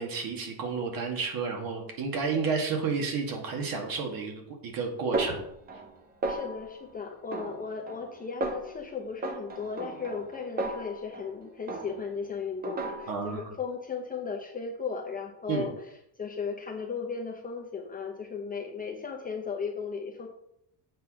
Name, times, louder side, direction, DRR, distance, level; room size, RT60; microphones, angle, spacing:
voice 1, 0.0-5.5 13.1-13.5 15.5-15.7, right 5 dB, 50° right, 2 dB, 2.1 m, -31 dB
Snare drum, 5.1-6.0 6.2-6.8 7.3-8.1 8.4-8.8 9.2-11.3 11.7-12.2 12.6-13.3, right 2 dB, 20° right, 0.7 m, -35 dB
voice 2, 6.3-15.7 16.2-20.3, left 5 dB, 20° left, 0 dB, 0.8 m, -36 dB
7.9 x 6.0 x 5.6 m, 0.75 s
cardioid pair, 170°, 46 cm